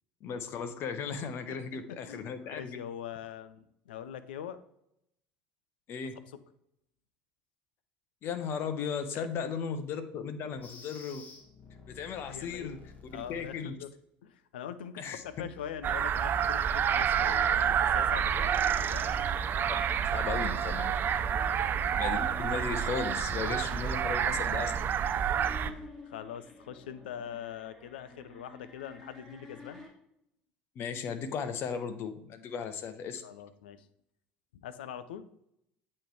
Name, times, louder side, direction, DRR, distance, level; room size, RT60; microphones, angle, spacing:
voice 1, 0.2-2.8 5.9-6.2 8.2-11.2 11.9-12.8 13.3-13.7 15.0-15.2 20.0-20.9 21.5-21.6 21.9-24.9 25.2-25.3 30.8-33.2, left 6 dB, 50° left, 9 dB, 0.8 m, -36 dB
voice 2, 1.5-4.6 9.1-9.3 11.9-13.9 14.2-18.5 18.8-19.1 20.8-21.5 25.1-29.9 33.2-33.9 34.5-35.3, left 9 dB, 75° left, 12 dB, 0.5 m, -43 dB
sound 1, 10.6-13.7 15.1-19.4, left 4 dB, 35° left, 1.6 m, -53 dB
sound 2, 15.8-25.7, right 8 dB, 40° right, 0.5 m, -28 dB
sound 3, 18.1-29.9, left 1 dB, 5° left, 2.0 m, -51 dB
8.5 x 3.2 x 4.7 m, 0.76 s
hypercardioid pair, 65°, 5 cm